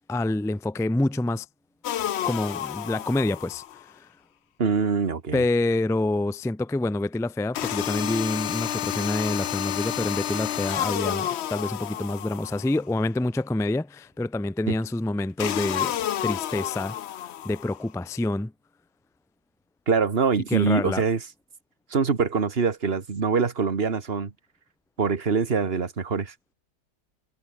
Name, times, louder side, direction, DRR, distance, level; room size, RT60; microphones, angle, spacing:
voice 1, 0.1-1.5 2.2-3.6 4.0-4.1 5.3-15.9 16.2-17.0 17.4-18.5 20.5-21.0, left 2 dB, 5° left, 0.3 m, -27 dB
sound 1, 1.8-3.8 7.5-12.8 15.4-17.8, left 11 dB, 70° left, 0.6 m, -30 dB
voice 2, 4.6-5.4 19.9-21.2 21.9-24.3 25.0-26.3, right 5 dB, 35° right, 1.8 m, -24 dB
omnidirectional pair, 1.9 m